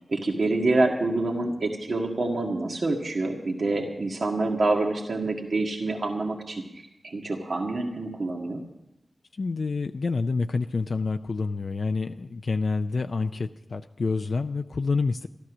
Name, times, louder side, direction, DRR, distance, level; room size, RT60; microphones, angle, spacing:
voice 1, 0.1-8.6, right 2 dB, 70° right, 1 dB, 1.8 m, -27 dB
voice 2, 9.4-15.3, left 4 dB, 70° left, 7 dB, 0.4 m, -28 dB
13.5 x 13.0 x 6.1 m, 0.88 s
wide cardioid pair, 75°, 0 cm